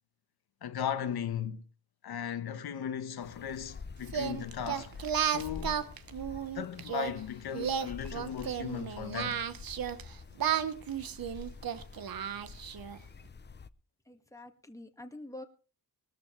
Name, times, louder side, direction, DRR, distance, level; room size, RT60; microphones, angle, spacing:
voice 1, 0.6-1.6 2.0-4.9 5.2-5.9 6.5-9.4, left 8 dB, 90° left, 1.2 m, -37 dB
sound 1, 3.2-13.7, left 4 dB, 30° left, 0.6 m, -48 dB
Singing, 4.1-7.1 7.5-10.0 10.4-13.0, right 8 dB, 70° right, 1.1 m, -33 dB
voice 2, 14.1-15.4, left 1 dB, 10° left, 1.8 m, -46 dB
20.5 x 13.5 x 3.2 m
wide cardioid pair, 125°, 37 cm